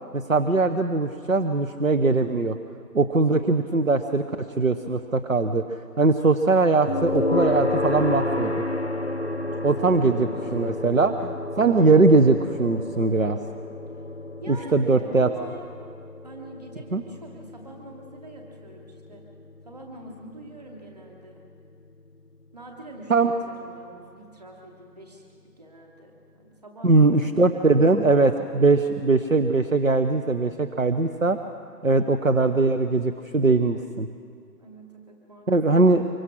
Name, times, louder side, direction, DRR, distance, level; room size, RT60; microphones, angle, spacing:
voice 1, 0.1-2.6 2.9-8.5 9.6-13.4 14.5-15.3 16.9-17.0 23.1-23.3 26.8-31.4 31.8-34.1 35.5-36.0, right 3 dB, 55° right, 7 dB, 1.0 m, -21 dB
sound 1, 6.9-21.8, left 2 dB, 40° left, 0.8 m, -31 dB
voice 2, 9.9-11.0 14.4-15.7 16.2-19.3 19.6-21.4 22.5-25.2 25.6-28.4 34.6-35.6, right 2 dB, 25° right, 0 dB, 2.5 m, -44 dB
24.5 x 23.5 x 6.3 m, 2.3 s
figure-of-eight pair, 175°, 49 cm